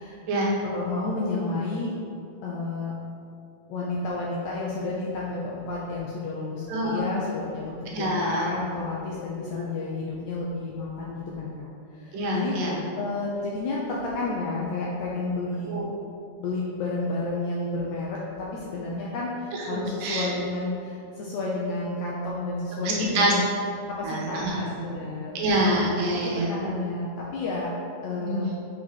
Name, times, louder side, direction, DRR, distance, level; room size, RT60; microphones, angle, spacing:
voice 1, 0.6-1.9 2.4-2.9 3.7-11.7 12.0-12.5 13.0-15.7 16.4-18.2 18.6-23.5 24.0-25.4 26.5-27.7 28.0-28.5, left 3 dB, 80° left, -5 dB, 1.7 m, -31 dB
voice 2, 6.7-7.1 7.9-8.5 9.4-9.6 12.1-12.8 15.7-15.9 19.5-19.7 20.0-20.3 23.1-23.3 24.0-24.6 25.4-26.5 28.2-28.5, right 1 dB, 75° right, -2 dB, 2.5 m, -26 dB
6.3 x 3.6 x 4.8 m, 2.4 s
omnidirectional pair, 3.9 m